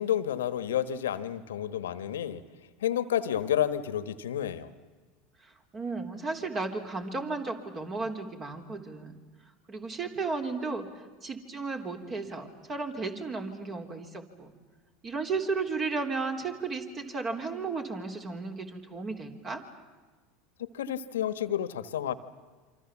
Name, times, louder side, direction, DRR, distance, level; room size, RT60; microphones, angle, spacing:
voice 1, 0.0-2.4 2.8-4.7 20.6-22.1, left 10 dB, 85° left, 13 dB, 1.3 m, -30 dB
voice 2, 5.4-9.1 9.7-14.5 15.0-19.6, right 4 dB, 35° right, 4 dB, 3.5 m, -34 dB
28.0 x 25.0 x 7.3 m, 1.4 s
hypercardioid pair, 85°, 0 cm